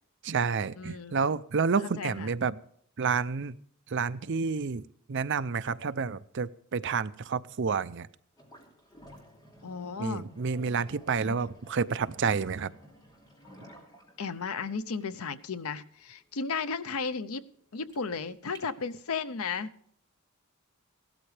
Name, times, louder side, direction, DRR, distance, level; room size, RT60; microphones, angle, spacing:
voice 1, 0.2-2.6 3.0-3.6 3.9-4.8 5.1-8.1 10.0-12.7, right 5 dB, 55° right, 0.5 m, -29 dB
voice 2, 0.8-1.2 2.0-2.3 9.6-10.4 11.2-11.4 14.2-17.4 17.7-19.7, left 5 dB, 85° left, 0.7 m, -34 dB
sound 1, 8.3-19.4, equal, 20° left, 2.8 m, -55 dB
16.5 x 13.0 x 3.3 m
head